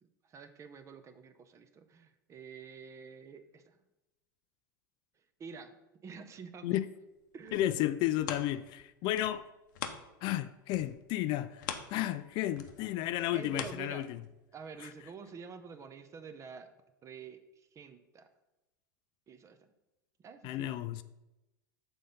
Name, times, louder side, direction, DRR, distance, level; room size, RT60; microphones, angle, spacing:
voice 1, 0.0-3.8 5.4-5.8 6.0-6.8 7.3-7.9 13.3-14.0 14.5-16.7 17.0-18.3 19.3-19.7 20.2-20.7, right 5 dB, 30° right, 0.7 m, -48 dB
sound 1, 7.2-10.4 10.7-14.5 15.0-15.1, left 8 dB, 70° left, 0.7 m, -44 dB
voice 2, 7.5-9.5 10.2-14.2 14.8-14.9 20.4-21.0, left 14 dB, 45° left, 0.3 m, -33 dB
6.6 x 3.9 x 5.4 m
hypercardioid pair, 100°, 11 cm